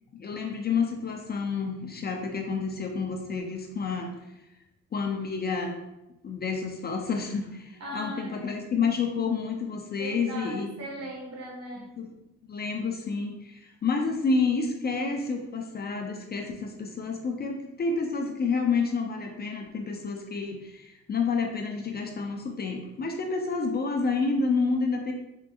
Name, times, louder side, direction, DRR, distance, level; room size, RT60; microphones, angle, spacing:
voice 1, 0.1-4.1 4.9-5.8 6.2-10.7 11.8-12.1 12.4-25.1, left 4 dB, 35° left, 3 dB, 0.4 m, -29 dB
voice 2, 7.8-8.6 10.0-12.1, right 1 dB, 60° right, -3 dB, 1.2 m, -39 dB
3.6 x 2.6 x 2.3 m, 0.93 s
cardioid pair, 90°, 30 cm